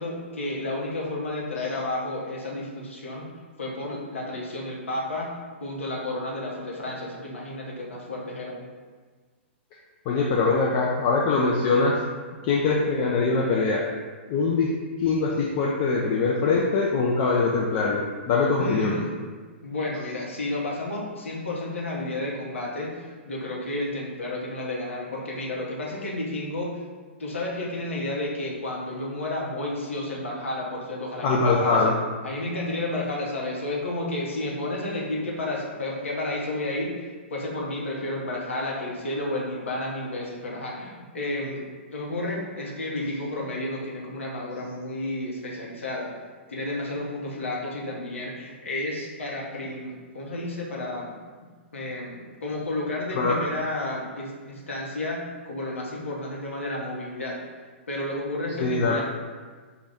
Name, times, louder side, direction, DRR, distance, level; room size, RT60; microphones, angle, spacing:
voice 1, 0.0-3.3 3.6-5.3 5.6-8.7 18.6-19.2 19.6-26.8 27.2-32.0 32.2-41.6 41.9-46.1 46.5-51.1 51.7-57.4 57.9-59.0, left 1 dB, 85° left, -3 dB, 0.9 m, -31 dB
voice 2, 10.1-12.0 12.4-13.8 14.3-14.7 15.0-19.0 31.2-32.0 53.2-53.3 58.6-59.0, left 4 dB, 40° left, -3 dB, 0.4 m, -23 dB
4.0 x 2.3 x 3.4 m, 1.5 s
hypercardioid pair, 125°, 7 cm